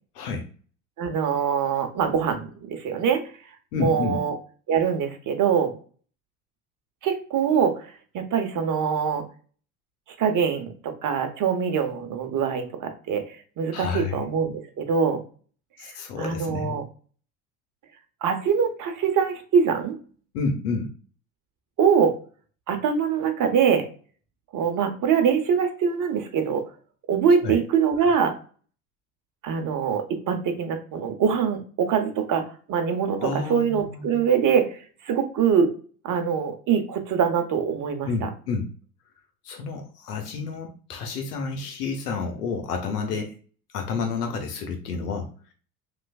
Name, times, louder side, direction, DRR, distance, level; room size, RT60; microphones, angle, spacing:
voice 1, 0.1-0.5 3.7-4.2 13.7-14.2 15.8-16.8 20.3-20.9 27.4-27.6 33.2-34.0 38.0-38.7 39.4-43.4 43.7-45.3, left 4 dB, 90° left, 4 dB, 0.7 m, -30 dB
voice 2, 1.0-3.2 3.7-4.4 4.7-5.7 7.0-7.7 8.1-9.2 10.2-15.2 15.8-15.9 16.2-16.8 18.2-19.9 21.8-22.2 22.7-23.9 24.5-26.7 27.1-28.3 29.4-34.8 35.0-35.7 36.0-38.3, right 7 dB, 45° right, 6 dB, 0.8 m, -23 dB
3.1 x 2.4 x 2.3 m, 0.40 s
hypercardioid pair, 70°, 45 cm